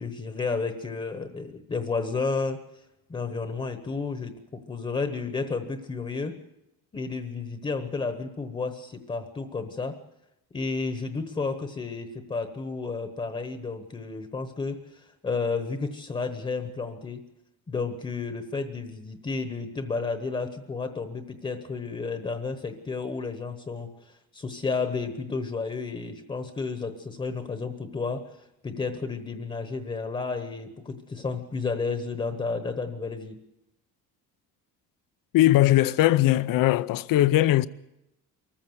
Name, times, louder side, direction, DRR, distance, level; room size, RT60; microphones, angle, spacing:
voice 1, 0.0-2.6 3.1-4.3 4.7-6.4 6.9-10.0 10.5-17.2 17.7-28.3 28.6-33.4, left 4 dB, 15° left, 1.1 m, -32 dB
voice 2, 35.3-37.7, left 15 dB, 65° left, 0.7 m, -20 dB
23.5 x 14.5 x 7.9 m
cardioid pair, 170°, 36 cm